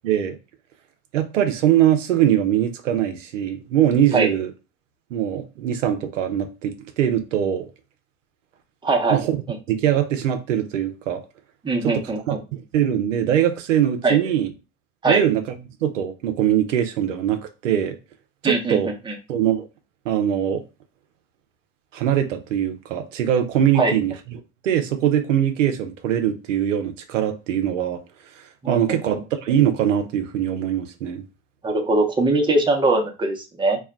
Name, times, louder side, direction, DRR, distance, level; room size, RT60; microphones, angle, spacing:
voice 1, 0.0-0.4 1.1-4.5 5.1-7.7 9.1-9.4 9.7-11.2 11.8-14.5 15.1-15.4 15.8-18.0 18.4-18.9 19.3-19.7 20.1-20.6 21.9-28.0 28.7-31.2, right 10 dB, 85° right, 0.6 m, -22 dB
voice 2, 8.8-9.2 11.6-12.4 14.0-14.2 15.0-15.2 18.4-19.1 23.7-24.0 28.6-29.0 31.6-33.8, right 2 dB, 10° right, 0.7 m, -21 dB
2.3 x 2.1 x 3.6 m
hypercardioid pair, 70°, 37 cm